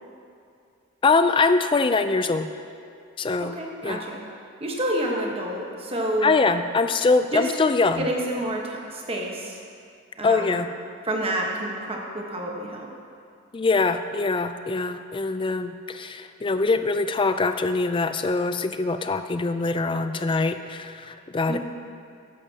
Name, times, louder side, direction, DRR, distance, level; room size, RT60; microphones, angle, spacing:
voice 1, 1.0-2.5 3.2-3.6 3.8-4.0 6.2-8.1 10.2-10.7 13.5-21.6, left 3 dB, 25° left, 9 dB, 0.3 m, -23 dB
voice 2, 3.4-4.2 4.6-6.3 7.2-7.5 8.0-9.6 10.2-10.6 11.0-12.9 21.5-21.6, right 1 dB, 25° right, -1 dB, 1.2 m, -29 dB
13.0 x 10.0 x 2.8 m, 2.4 s
head